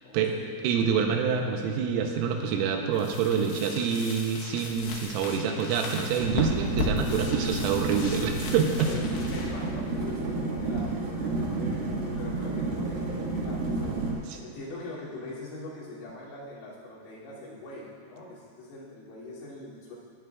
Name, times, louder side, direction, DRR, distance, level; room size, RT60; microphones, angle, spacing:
voice 1, 0.0-0.5 8.8-14.0 14.4-20.0, left 2 dB, 85° left, -8 dB, 5.6 m, -42 dB
voice 2, 0.6-8.9, right 6 dB, 80° right, 3 dB, 3.3 m, -26 dB
sound 1, 2.9-10.7, left 3 dB, 70° left, 3.1 m, -37 dB
sound 2, 6.2-14.1, right 2 dB, 60° right, 2.8 m, -31 dB
18.5 x 11.0 x 2.4 m, 2.1 s
omnidirectional pair, 6.0 m